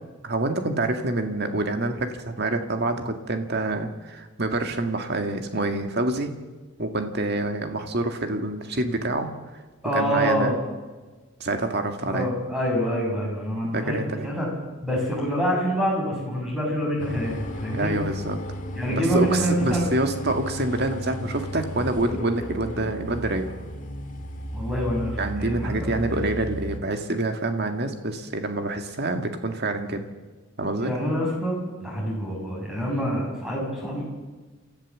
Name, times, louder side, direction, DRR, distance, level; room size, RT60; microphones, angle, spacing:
voice 1, 0.2-6.3 6.8-9.3 9.9-10.5 11.4-12.3 13.7-14.3 17.7-18.4 18.9-23.5 25.2-30.0 30.6-30.9, right 2 dB, 50° right, 6 dB, 2.0 m, -27 dB
voice 2, 9.8-10.5 12.0-14.5 14.8-17.9 18.7-19.9 24.5-25.7 26.1-26.2 30.7-34.0, equal, ahead, -3 dB, 6.8 m, -26 dB
sound 1, 17.0-26.8, equal, 35° left, 1.8 m, -34 dB
29.0 x 13.5 x 7.5 m, 1.3 s
head